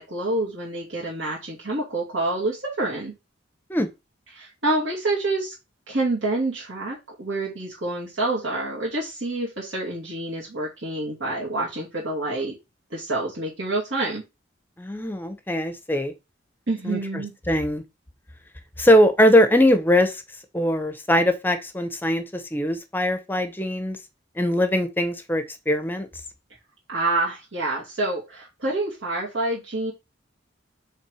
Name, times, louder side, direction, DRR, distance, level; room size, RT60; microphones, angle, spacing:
voice 1, 0.0-3.1 4.3-5.5 5.9-12.5 12.9-14.2 16.7-17.3 26.9-29.9, right 2 dB, 80° right, 2.3 m, -27 dB
voice 2, 14.8-16.1 16.8-17.8 18.8-20.2 20.5-24.0 24.4-26.1, left 1 dB, 10° left, 0.7 m, -21 dB
5.6 x 3.5 x 4.8 m
head